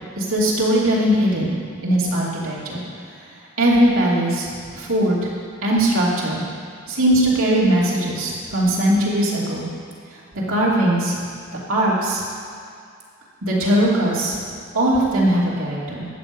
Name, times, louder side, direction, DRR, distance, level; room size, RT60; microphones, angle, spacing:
voice 1, 0.2-1.5 1.8-2.8 3.6-4.5 4.7-5.3 5.6-6.4 6.9-9.7 10.5-11.2 11.7-12.2 13.4-14.4 14.7-16.1, right 1 dB, 80° right, -6 dB, 3.0 m, -19 dB
13.5 x 8.7 x 5.5 m, 2.3 s
head